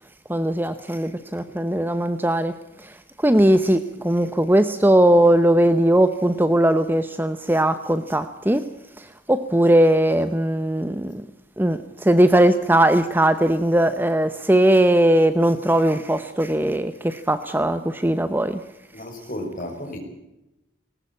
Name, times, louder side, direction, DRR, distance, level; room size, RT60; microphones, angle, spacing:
voice 1, 0.3-2.5 2.8-8.7 9.0-11.2 11.6-18.6, right 1 dB, 10° right, 11 dB, 0.8 m, -19 dB
voice 2, 18.9-20.0, left 1 dB, 45° left, 3 dB, 6.0 m, -33 dB
19.5 x 19.0 x 8.5 m, 0.90 s
head